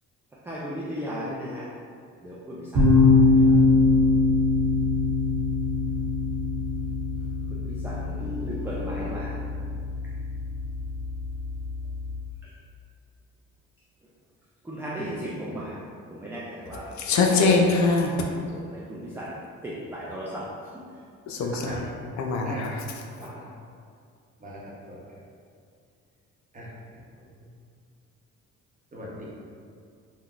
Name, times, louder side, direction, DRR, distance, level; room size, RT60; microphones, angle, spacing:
voice 1, 0.5-1.7 2.2-3.1 3.5-3.6 7.5-9.4 14.7-15.8 16.1-16.9 18.5-19.3 19.6-20.5 23.2-23.4, equal, 10° right, 0.3 m, -35 dB
sound 1, 2.7-12.2, left 3 dB, 85° right, 1.0 m, -23 dB
voice 2, 17.0-18.2 21.3-21.9 22.2-22.8, left 4 dB, 65° left, 0.5 m, -23 dB
voice 3, 21.4-21.8 22.5-22.6 23.1-23.5 24.4-25.0 26.5-26.7 28.9-29.3, equal, 25° right, 0.8 m, -41 dB
3.6 x 2.1 x 2.3 m
cardioid pair, 90°, 30 cm